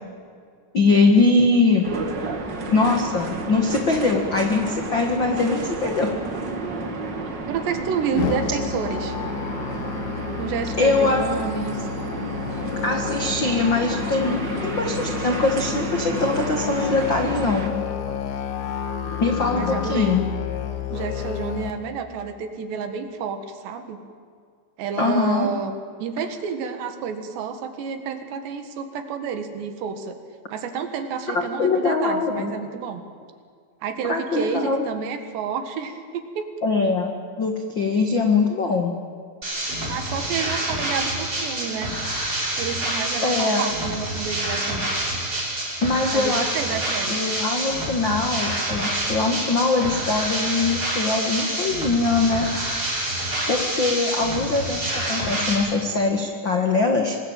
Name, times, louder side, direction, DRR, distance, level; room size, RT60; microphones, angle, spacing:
voice 1, 0.7-1.9 2.7-6.1 10.8-11.2 12.8-17.7 19.2-20.2 25.0-25.5 31.3-32.5 34.1-34.8 36.6-37.1 37.4-38.9 43.2-43.6 45.8-46.5 47.1-52.5 53.5-57.2, left 3 dB, 85° left, 3 dB, 1.0 m, -22 dB
sound 1, 1.8-17.7, right 2 dB, 50° right, 1.3 m, -31 dB
voice 2, 7.5-9.2 10.4-11.9 19.5-20.2 20.9-24.0 24.8-25.7 26.0-30.2 30.5-33.0 33.8-36.5 39.8-41.9 42.6-44.9 46.1-47.3, right 6 dB, 70° right, 7 dB, 3.9 m, -30 dB
Musical instrument, 8.2-21.7, left 8 dB, 60° left, 2.2 m, -30 dB
sound 2, 39.4-55.5, right 1 dB, 20° right, 6.9 m, -27 dB
26.0 x 20.0 x 9.0 m, 2.1 s
omnidirectional pair, 5.3 m